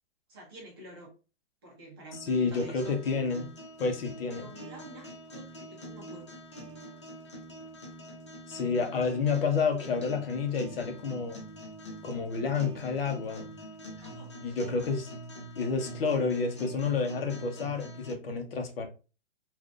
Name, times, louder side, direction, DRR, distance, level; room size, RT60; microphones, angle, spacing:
voice 1, 0.3-1.1 1.6-2.9 4.3-6.3 14.0-14.6, right 1 dB, 20° right, 0.7 m, -48 dB
sound 1, 2.1-18.1, right 1 dB, 30° left, 0.3 m, -45 dB
voice 2, 2.3-3.5 3.8-4.5 8.5-11.4 12.0-13.5 14.4-15.1 15.6-18.9, left 5 dB, 60° left, 0.8 m, -30 dB
3.7 x 2.5 x 2.4 m
hypercardioid pair, 175°, 32 cm